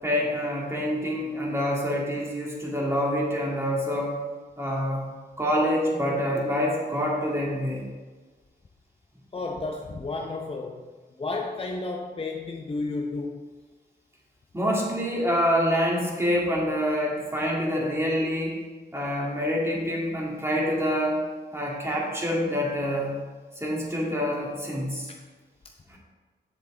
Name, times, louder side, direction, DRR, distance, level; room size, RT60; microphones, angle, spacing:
voice 1, 0.0-4.2 4.6-5.1 5.4-7.9 14.5-18.6 18.9-21.2 21.5-23.1 23.6-25.1 25.9-26.0, equal, 15° right, -4 dB, 2.2 m, -26 dB
voice 2, 9.3-10.9 11.2-13.4 25.1-25.2, left 3 dB, 30° left, 2 dB, 0.6 m, -32 dB
7.6 x 7.0 x 3.8 m, 1.4 s
cardioid pair, 85°, 18 cm